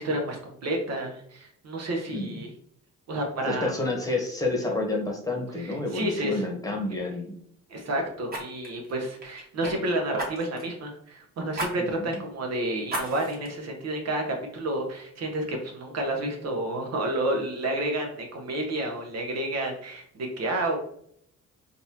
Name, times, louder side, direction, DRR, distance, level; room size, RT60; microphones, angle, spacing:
voice 1, 0.0-2.5 3.1-3.7 5.6-6.4 6.9-7.0 7.7-14.2 14.5-20.8, right 1 dB, 60° right, 2 dB, 0.9 m, -30 dB
voice 2, 3.5-7.4 11.8-12.2, left 2 dB, 10° left, -1 dB, 1.1 m, -29 dB
Fire, 5.6-5.8 6.2-6.4 8.3-9.7 10.2-10.7 11.5-11.7 12.1-12.2 12.9-13.5 14.0-14.1, right 1 dB, 30° right, 1.3 m, -34 dB
3.9 x 2.5 x 2.8 m, 0.66 s
cardioid pair, 90°, 30 cm